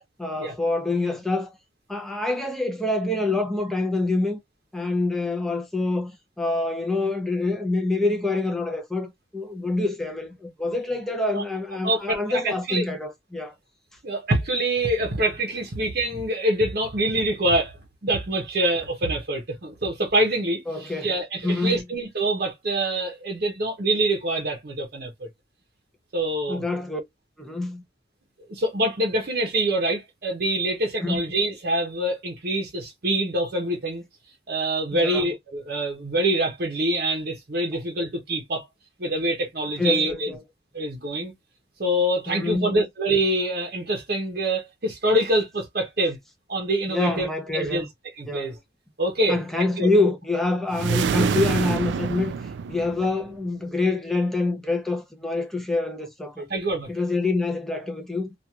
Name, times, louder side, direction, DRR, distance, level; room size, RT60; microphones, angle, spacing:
voice 1, 0.2-1.6 1.9-4.4 4.7-6.1 6.4-13.5 20.7-21.1 21.4-21.8 26.5-27.0 27.4-27.8 31.0-31.2 34.9-35.3 39.8-40.4 42.3-42.8 46.9-47.9 48.3-48.6 49.3-52.3 52.7-56.5 56.9-58.3, left 2 dB, ahead, 0.6 m, -26 dB
voice 2, 11.8-12.9 14.0-17.8 18.0-25.3 26.1-26.6 28.5-34.0 34.5-38.6 39.0-40.3 40.7-41.3 41.8-46.2 46.5-47.9 48.2-48.5 49.0-49.9 56.5-56.9, right 1 dB, 55° right, 0.8 m, -25 dB
sound 1, 50.7-53.3, right 5 dB, 80° right, 0.3 m, -26 dB
2.9 x 2.4 x 2.3 m
head